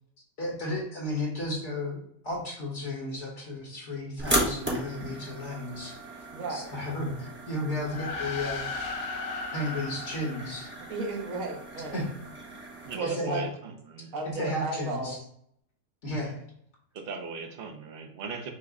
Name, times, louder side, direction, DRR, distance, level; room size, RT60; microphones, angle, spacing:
voice 1, 0.4-8.7 9.5-10.7 11.9-12.1 13.0-13.5 14.3-15.2 16.0-16.4, left 1 dB, 55° left, -3 dB, 1.4 m, -33 dB
sound 1, 4.2-12.9, right 1 dB, 10° right, 0.7 m, -36 dB
voice 2, 6.3-6.7 10.9-12.0 12.9-13.4 14.1-15.2, right 3 dB, 70° right, -2 dB, 1.3 m, -34 dB
sound 2, 7.8-11.5, left 3 dB, 80° left, 1.2 m, -37 dB
voice 3, 12.8-14.1 16.9-18.5, right 4 dB, 55° right, 4 dB, 0.7 m, -38 dB
5.8 x 2.1 x 3.6 m, 0.69 s
omnidirectional pair, 1.5 m